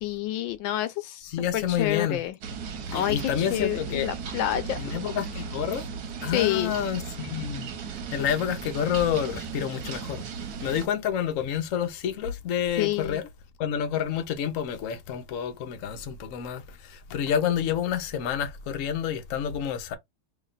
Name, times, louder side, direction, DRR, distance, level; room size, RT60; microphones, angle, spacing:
voice 1, 0.0-2.4 2.9-5.0 6.3-6.7 12.8-13.2, left 13 dB, 75° left, 1.3 m, -28 dB
voice 2, 1.3-2.2 2.9-4.1 4.8-5.8 6.2-7.7 8.1-10.2 10.6-13.2 13.6-20.0, left 9 dB, 60° left, 0.8 m, -29 dB
sound 1, 2.4-10.9, right 6 dB, 60° right, 1.1 m, -36 dB
3.1 x 2.9 x 3.9 m
omnidirectional pair, 2.2 m